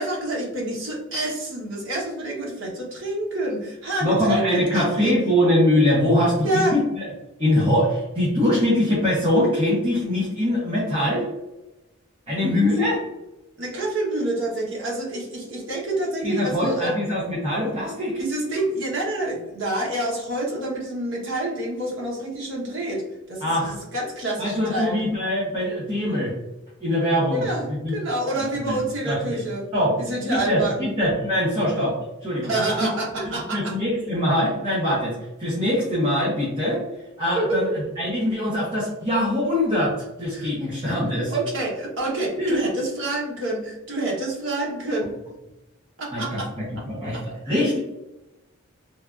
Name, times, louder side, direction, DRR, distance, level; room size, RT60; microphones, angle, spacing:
voice 1, 0.0-5.1 6.4-6.8 12.7-12.8 13.6-17.0 18.2-23.0 23.3-25.0 27.3-29.6 30.0-30.9 32.4-33.6 37.3-37.6 40.3-40.5 41.3-45.1 46.0-46.5 47.1-47.2, right 1 dB, 65° right, -3 dB, 0.9 m, -27 dB
voice 2, 4.0-7.0 7.4-11.2 12.3-13.0 16.2-18.2 23.4-23.7 24.4-26.3 26.8-27.9 28.4-28.8 29.0-29.4 29.7-30.0 30.3-32.0 32.2-32.5 33.2-35.1 35.4-36.8 37.2-41.3 42.4-42.6 46.1-47.8, left 1 dB, 25° right, -8 dB, 0.7 m, -23 dB
3.3 x 2.3 x 2.3 m, 0.98 s
head